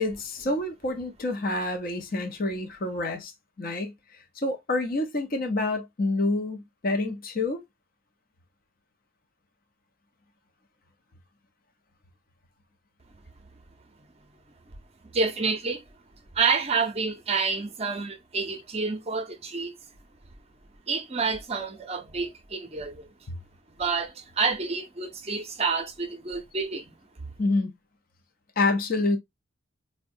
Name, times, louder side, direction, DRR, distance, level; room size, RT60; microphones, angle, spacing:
voice 1, 0.0-3.3 3.6-7.6 23.3-23.4 27.4-27.7 28.6-29.2, left 2 dB, 45° left, 0.6 m, -28 dB
voice 2, 15.0-15.8 16.3-19.8 20.9-23.1 23.7-26.9, right 4 dB, 30° right, 0.6 m, -28 dB
4.5 x 2.1 x 2.5 m
head